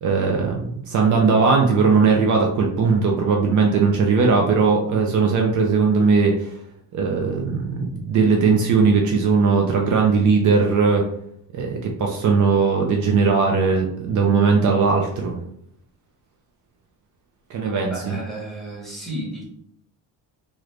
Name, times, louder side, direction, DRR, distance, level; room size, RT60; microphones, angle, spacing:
voice 1, 0.0-6.6 6.9-11.0 11.5-15.4 17.5-18.1, right 5 dB, 50° right, 1 dB, 0.5 m, -19 dB
voice 2, 17.8-19.4, right 1 dB, ahead, -6 dB, 0.9 m, -33 dB
3.1 x 2.5 x 3.1 m, 0.69 s
cardioid pair, 180°, 38 cm